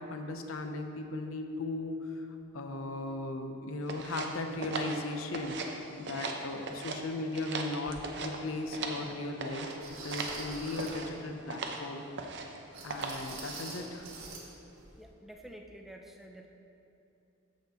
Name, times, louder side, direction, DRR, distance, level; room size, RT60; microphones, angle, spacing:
voice 1, 0.0-2.3 2.5-9.8 10.0-12.0 12.8-14.1, left 2 dB, 80° left, 5 dB, 0.7 m, -37 dB
sound 1, 3.9-5.8 6.0-7.0 7.3-9.1 9.4-9.7 10.1-10.4 10.8-11.1 11.5-11.8 12.2-12.6 12.9-13.3, right 4 dB, 55° right, 0.7 m, -38 dB
sound 2, 7.9-8.0 8.7-8.8 9.8-11.1 12.7-14.5 14.7-14.9 15.3-15.4, right 3 dB, 80° right, 1.4 m, -44 dB
voice 2, 15.0-16.5, right 1 dB, ahead, 2 dB, 0.4 m, -49 dB
14.0 x 5.8 x 3.0 m, 3.0 s
head